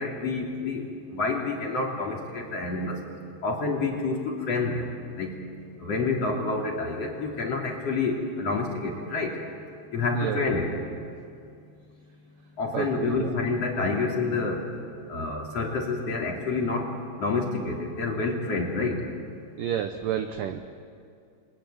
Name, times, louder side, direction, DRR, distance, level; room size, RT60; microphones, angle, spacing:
voice 1, 0.0-3.0 3.4-4.9 5.2-5.3 5.8-9.4 9.9-10.7 12.6-14.6 15.1-16.9 17.2-19.0, left 3 dB, 40° left, 0 dB, 3.4 m, -28 dB
voice 2, 12.7-13.3 19.6-20.6, right 9 dB, 85° right, 8 dB, 1.9 m, -30 dB
28.5 x 22.0 x 9.1 m, 2.4 s
omnidirectional pair, 5.3 m